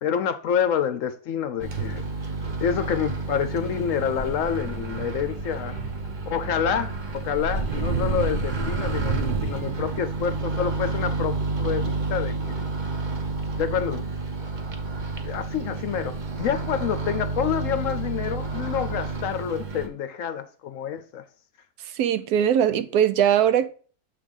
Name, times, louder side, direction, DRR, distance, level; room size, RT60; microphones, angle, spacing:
voice 1, 0.0-2.1 2.6-5.8 6.3-12.4 13.6-14.0 15.2-21.2, left 8 dB, 65° left, 0.9 m, -28 dB
Microwave oven, 1.6-19.9, right 3 dB, 40° right, 0.8 m, -29 dB
sound 1, 1.8-4.2 4.5-4.6 4.8-5.1 5.7-6.2 6.5-7.1 8.1-8.5 9.2-9.3 9.6-10.2, right 5 dB, 55° right, 1.1 m, -38 dB
voice 2, 21.8-23.7, right 9 dB, 80° right, 1.1 m, -21 dB
7.3 x 3.4 x 5.2 m
omnidirectional pair, 1.6 m